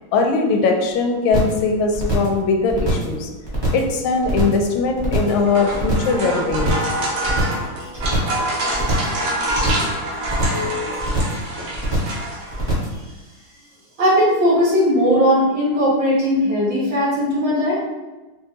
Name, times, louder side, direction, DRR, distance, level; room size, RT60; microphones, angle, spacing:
voice 1, 0.1-3.3 3.7-6.8, left 4 dB, 85° left, 3 dB, 1.4 m, -20 dB
sound 1, 1.3-1.6 1.9-2.4 2.7-3.1 3.4-3.9 4.2-4.7 5.0-5.4 5.7-6.2 6.5-6.9 7.2-7.7 8.0-8.4 8.7-9.2 9.5-9.9 10.2-10.7 11.0-11.4 11.7-12.2 12.5-13.0, right 2 dB, 20° right, 0.6 m, -23 dB
sound 2, 5.1-12.8, right 1 dB, 85° right, 1.7 m, -26 dB
voice 2, 14.0-17.7, equal, 65° right, -9 dB, 2.3 m, -18 dB
5.4 x 2.3 x 2.9 m, 1.1 s
omnidirectional pair, 2.2 m